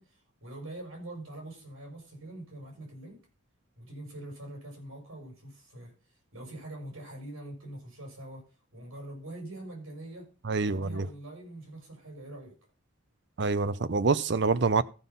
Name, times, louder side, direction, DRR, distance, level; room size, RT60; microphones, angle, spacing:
voice 1, 0.0-3.2 3.8-8.4 8.7-10.3 10.6-12.5, right 1 dB, 85° right, 6.2 m, -44 dB
voice 2, 10.5-11.0 13.4-14.8, right 4 dB, 55° right, 0.5 m, -26 dB
14.5 x 5.7 x 5.4 m
head